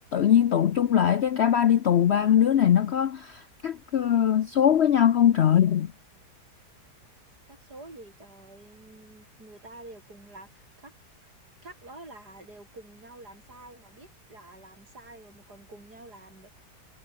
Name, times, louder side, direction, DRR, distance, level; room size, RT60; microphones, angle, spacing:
voice 1, 0.1-5.9, left 9 dB, 60° left, 0.7 m, -21 dB
voice 2, 7.5-10.9 11.2-11.3 11.6-16.5, right 2 dB, 70° right, 7.9 m, -48 dB
omnidirectional pair, 1.8 m